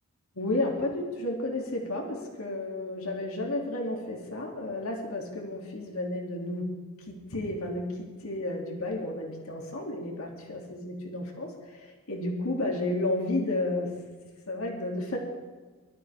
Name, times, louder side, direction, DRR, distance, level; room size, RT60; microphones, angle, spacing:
voice 1, 0.3-6.8 7.1-13.9 14.5-15.2, left 2 dB, 80° left, 0 dB, 2.8 m, -32 dB
22.5 x 13.0 x 3.6 m, 1.3 s
head